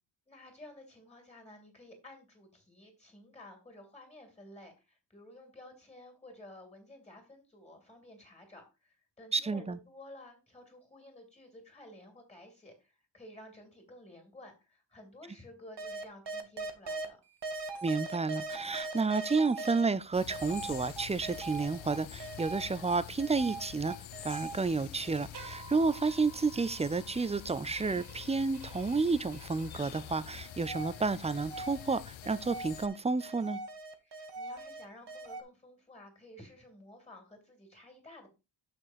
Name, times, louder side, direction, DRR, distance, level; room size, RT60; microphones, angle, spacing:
voice 1, 0.3-17.2 34.0-38.3, left 1 dB, 15° left, 2.7 m, -53 dB
voice 2, 9.3-9.8 17.8-24.0 24.2-33.6, right 4 dB, 15° right, 0.3 m, -31 dB
sound 1, 15.8-17.1 17.4-19.8 20.3-22.9 23.2-30.0 30.5-35.4, right 3 dB, 60° right, 1.1 m, -42 dB
sound 2, 20.1-32.9, left 12 dB, 80° left, 0.6 m, -47 dB
6.9 x 6.2 x 4.2 m
wide cardioid pair, 165°, 46 cm